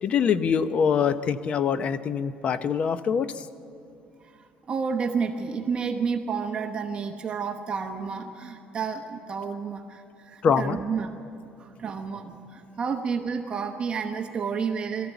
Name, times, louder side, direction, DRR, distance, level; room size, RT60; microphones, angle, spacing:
voice 1, 0.0-3.5 10.4-10.8, left 7 dB, 45° left, 13 dB, 0.7 m, -24 dB
voice 2, 4.7-11.1 11.6-15.1, right 5 dB, 35° right, 4 dB, 1.1 m, -30 dB
22.5 x 14.0 x 8.2 m, 2.5 s
cardioid pair, 135°, 3 cm